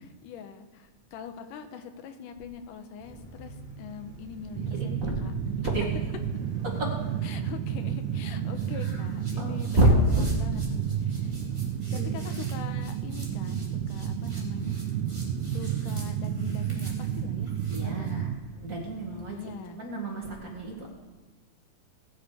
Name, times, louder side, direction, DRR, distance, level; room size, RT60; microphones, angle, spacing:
voice 1, 0.2-4.8 5.0-5.3 7.2-11.3 11.9-14.8 15.5-18.3 19.3-19.8, left 7 dB, 90° left, 8 dB, 2.6 m, -43 dB
sound 1, 3.0-19.2, right 1 dB, 15° left, 3.6 m, -45 dB
sound 2, 4.5-18.3, right 9 dB, 80° right, 2.2 m, -31 dB
voice 2, 4.8-5.2 5.7-5.8 6.8-6.9 8.7-9.0 9.4-10.3 11.9-12.3 17.7-18.3 18.6-19.4 19.7-20.9, right 1 dB, 35° right, -1 dB, 1.7 m, -28 dB
sound 3, 8.5-18.1, right 1 dB, 10° right, 2.7 m, -49 dB
19.0 x 7.4 x 5.0 m, 1.3 s
omnidirectional pair, 3.6 m